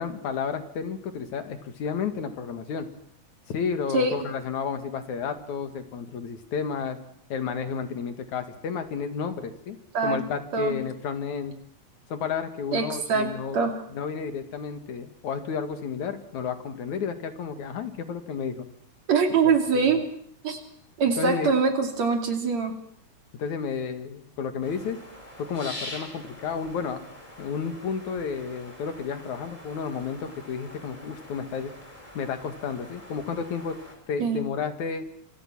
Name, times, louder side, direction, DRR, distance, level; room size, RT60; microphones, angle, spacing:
voice 1, 0.0-2.9 3.5-7.0 7.3-9.8 10.0-11.5 12.1-13.6 13.9-18.7 19.3-19.8 21.2-21.5 23.4-25.0 25.4-27.0 27.4-31.7 32.1-33.8 34.1-35.1, left 6 dB, 75° left, 8 dB, 3.4 m, -31 dB
voice 2, 12.7-13.3 13.5-13.7 19.1-20.0 20.4-20.6 21.0-22.7 34.2-34.4, right 5 dB, 65° right, 5 dB, 4.1 m, -23 dB
sound 1, 24.6-34.0, left 1 dB, 10° left, 4.9 m, -44 dB
26.5 x 26.5 x 6.2 m, 0.66 s
omnidirectional pair, 3.4 m